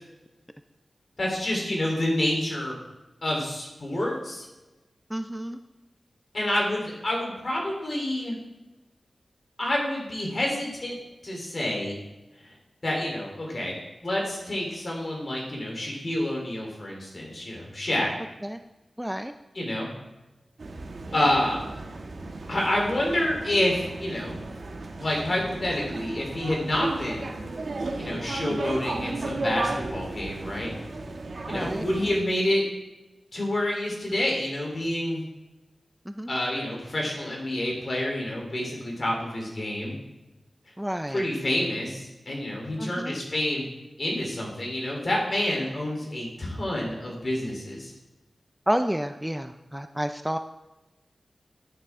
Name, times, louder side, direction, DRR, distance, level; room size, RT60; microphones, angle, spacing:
voice 1, 1.2-2.8 3.2-4.5 6.3-8.3 9.6-11.0 11.2-12.0 12.8-13.7 14.0-18.1 19.6-19.9 21.1-21.6 22.5-24.4 25.0-27.3 28.0-30.7 31.5-32.6 33.3-35.2 36.3-40.0 41.1-43.7 44.0-47.9, left 1 dB, 45° left, -2 dB, 3.5 m, -28 dB
voice 2, 5.1-5.6 18.4-18.6 19.0-19.3 31.5-31.8 36.1-36.3 40.8-41.3 42.8-43.2 48.7-50.4, equal, 5° right, 8 dB, 0.4 m, -30 dB
sound 1, 20.6-32.2, right 2 dB, 65° right, 1.2 m, -34 dB
12.0 x 9.4 x 3.7 m, 1.1 s
wide cardioid pair, 105°, 0 cm